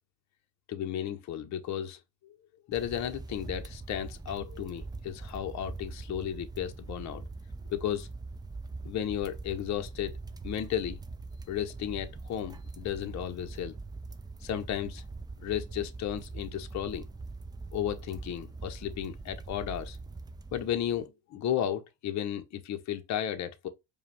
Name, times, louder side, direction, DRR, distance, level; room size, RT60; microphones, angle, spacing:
voice 1, 0.7-2.4 2.7-7.2 7.7-8.1 8.8-10.2 10.4-11.0 11.5-13.7 14.4-15.0 15.4-17.1 17.7-20.0 20.5-23.7, left 10 dB, 45° left, 0.7 m, -34 dB
sound 1, 2.7-21.1, right 3 dB, 10° right, 0.4 m, -43 dB
4.9 x 2.3 x 3.3 m
supercardioid pair, 75°, 40 cm